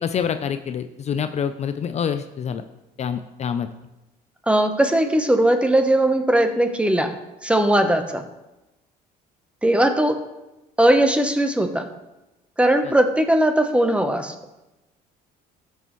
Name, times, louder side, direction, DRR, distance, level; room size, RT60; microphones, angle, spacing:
voice 1, 0.0-2.6 3.0-3.7 12.8-12.9, left 7 dB, 40° left, 10 dB, 0.5 m, -26 dB
voice 2, 4.5-7.1 7.4-8.2 9.6-10.2 10.8-11.8 12.6-14.3, right 1 dB, 5° right, 7 dB, 0.8 m, -19 dB
13.5 x 6.3 x 3.1 m, 0.99 s
cardioid pair, 110°, 17 cm